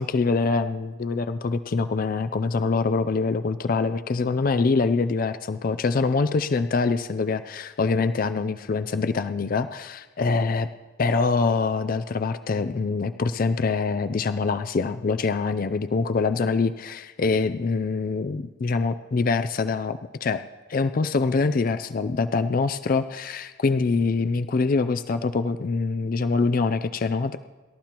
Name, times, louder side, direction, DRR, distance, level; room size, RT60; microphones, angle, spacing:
voice 1, 0.0-10.7 11.0-20.4 20.7-27.4, left 4 dB, 45° left, 11 dB, 0.4 m, -24 dB
27.5 x 13.5 x 2.9 m, 1.3 s
head